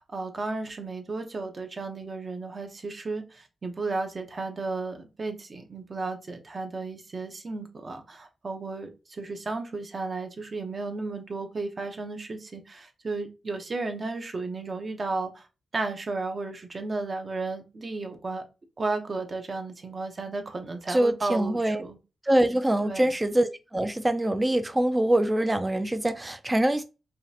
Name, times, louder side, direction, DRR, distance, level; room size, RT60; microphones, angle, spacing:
voice 1, 0.1-15.5 15.7-18.4 18.8-22.0 22.8-23.2, right 3 dB, 35° right, 0.8 m, -33 dB
voice 2, 20.9-21.8 22.3-26.8, right 1 dB, 15° right, 0.4 m, -24 dB
5.0 x 2.5 x 2.7 m
wide cardioid pair, 120°, 0 cm